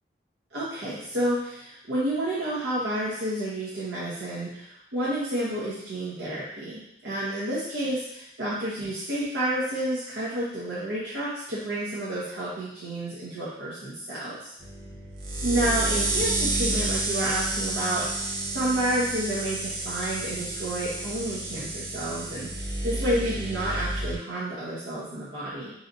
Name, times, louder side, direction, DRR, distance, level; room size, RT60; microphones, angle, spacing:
voice 1, 0.5-14.5 15.4-18.1 18.5-25.7, right 1 dB, 85° right, -9 dB, 1.1 m, -30 dB
sound 1, 14.6-24.2, right 2 dB, 55° right, 1.0 m, -30 dB
4.1 x 2.9 x 3.9 m, 0.80 s
head